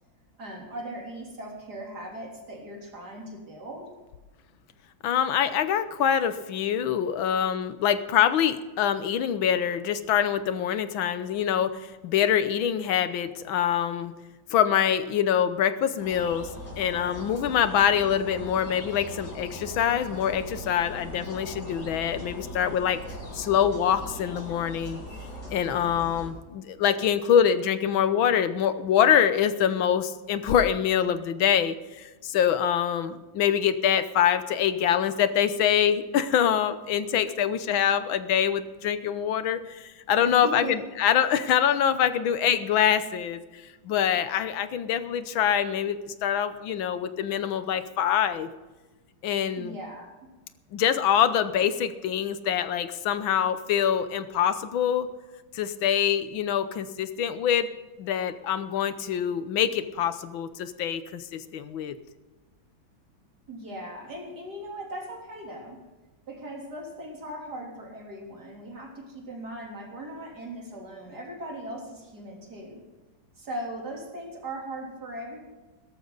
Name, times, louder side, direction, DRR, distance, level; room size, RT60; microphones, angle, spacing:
voice 1, 0.4-3.9 6.4-6.5 7.3-7.4 12.8-12.9 40.3-40.8 49.6-50.1 63.5-65.8 66.3-72.8 73.4-75.4, right 1 dB, 50° right, 0 dB, 4.0 m, -39 dB
voice 2, 5.0-14.1 14.5-16.5 16.8-23.0 23.3-25.0 25.5-48.5 49.2-49.7 50.7-55.1 55.5-57.7 58.0-62.0, left 9 dB, 80° left, 12 dB, 1.7 m, -25 dB
sound 1, 16.0-26.3, equal, 55° left, 4.9 m, -40 dB
17.5 x 13.5 x 4.0 m, 1.2 s
omnidirectional pair, 2.2 m